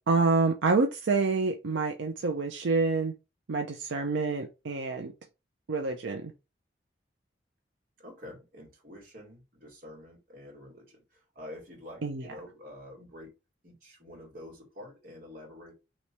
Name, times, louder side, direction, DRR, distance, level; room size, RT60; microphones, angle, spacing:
voice 1, 0.1-3.1 3.5-5.1 5.7-6.3 12.0-12.2, right 4 dB, 80° right, 3 dB, 0.5 m, -27 dB
voice 2, 8.0-13.4 13.6-15.7, left 1 dB, 50° right, -2 dB, 2.0 m, -47 dB
3.1 x 3.1 x 4.3 m, 0.27 s
head